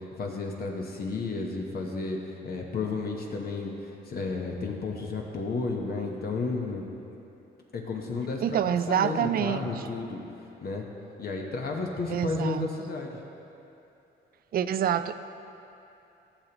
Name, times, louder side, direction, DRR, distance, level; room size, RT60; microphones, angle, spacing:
voice 1, 0.2-2.2 2.4-3.7 4.0-6.9 7.7-10.2 10.6-10.9 11.2-13.2, left 3 dB, 50° left, 0 dB, 1.0 m, -32 dB
voice 2, 8.4-9.9 12.1-12.7 14.5-15.1, right 9 dB, 50° right, 13 dB, 0.4 m, -27 dB
14.5 x 6.7 x 2.9 m, 2.8 s
cardioid pair, 90°, 20 cm